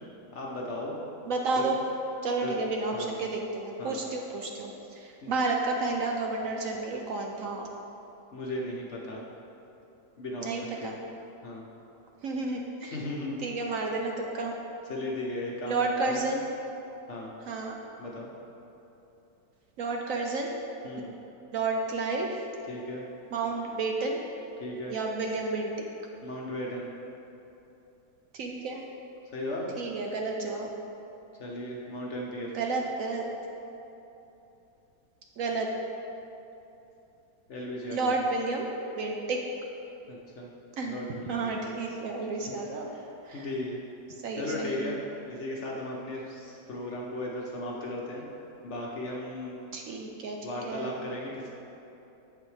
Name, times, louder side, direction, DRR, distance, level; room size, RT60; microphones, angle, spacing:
voice 1, 0.3-1.0 1.6-1.7 2.4-2.5 2.9-3.1 3.8-4.0 5.2-5.3 8.3-9.2 10.2-10.9 11.4-11.6 12.8-13.4 14.9-16.2 17.1-17.3 18.0-18.3 20.8-21.1 22.7-23.0 24.6-24.9 26.2-26.9 29.3-29.7 31.4-32.5 37.5-38.1 40.1-40.5 40.9-41.6 42.5-42.6 42.9-43.8 44.4-45.0 45.3-48.2 48.6-49.6 50.4-51.5, left 1 dB, 55° left, -2 dB, 0.9 m, -36 dB
voice 2, 1.3-1.8 2.2-7.7 10.4-11.0 12.2-13.0 13.4-14.5 15.7-16.4 17.5-17.8 19.8-20.5 21.5-22.4 23.3-24.2 24.9-25.7 28.3-28.8 29.8-30.7 32.5-33.2 35.4-35.7 37.9-38.7 39.0-39.4 40.8-41.0 41.3-42.9 43.2-43.5 44.2-44.9 49.7-50.4 50.6-50.9, right 3 dB, 65° right, 1 dB, 0.9 m, -31 dB
8.2 x 7.7 x 3.2 m, 3.0 s
omnidirectional pair, 1.8 m